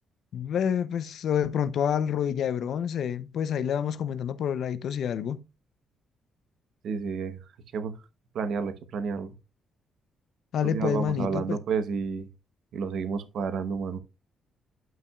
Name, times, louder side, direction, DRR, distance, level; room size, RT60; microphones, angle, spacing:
voice 1, 0.3-5.4 10.5-11.6, left 8 dB, 70° left, 0.5 m, -28 dB
voice 2, 6.8-7.4 7.7-7.9 8.3-9.3 10.6-12.3 12.7-14.0, right 5 dB, 70° right, 0.9 m, -30 dB
11.0 x 5.5 x 2.3 m
cardioid pair, 90°, 0 cm